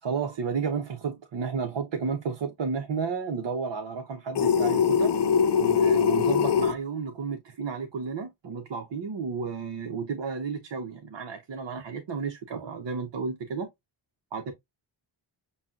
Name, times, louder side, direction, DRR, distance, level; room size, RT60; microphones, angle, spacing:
voice 1, 0.0-5.2 5.6-13.7 14.3-14.5, right 5 dB, 60° right, 1.1 m, -32 dB
sound 1, 4.3-6.7, left 7 dB, 55° left, 0.8 m, -22 dB
7.2 x 2.4 x 2.4 m
cardioid pair, 75°, 49 cm